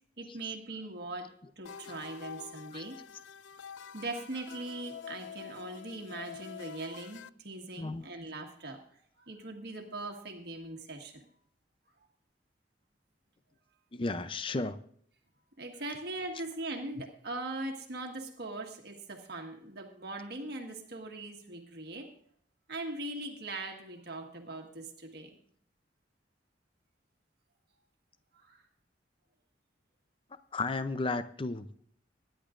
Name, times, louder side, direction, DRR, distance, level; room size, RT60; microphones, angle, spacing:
voice 1, 0.2-3.0 3.9-11.2 15.6-22.1 22.7-25.4 28.3-28.7, right 2 dB, 60° right, 2 dB, 1.6 m, -41 dB
sound 1, 1.6-7.3, left 7 dB, 80° left, 0.4 m, -47 dB
voice 2, 13.9-14.8 30.5-31.8, left 3 dB, 30° left, 12 dB, 0.5 m, -33 dB
22.5 x 10.0 x 2.5 m, 0.62 s
head